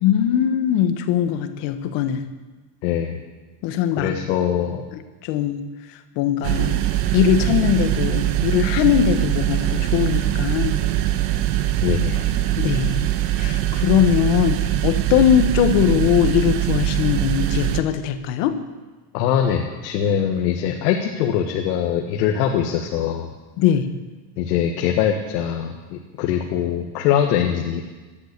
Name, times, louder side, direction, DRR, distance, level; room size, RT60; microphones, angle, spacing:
voice 1, 0.0-2.3 3.6-4.2 4.9-5.7 6.1-6.8 7.1-10.8 12.6-13.0 13.4-18.6 23.6-23.9, left 10 dB, 60° left, 9 dB, 1.5 m, -20 dB
voice 2, 2.8-3.2 4.0-4.8 11.8-12.3 19.1-23.3 24.4-27.8, left 9 dB, 90° left, 2 dB, 1.7 m, -22 dB
sound 1, 6.4-17.8, right 13 dB, 80° right, 1.4 m, -22 dB
17.5 x 11.5 x 6.8 m, 1.3 s
supercardioid pair, 140°, 48 cm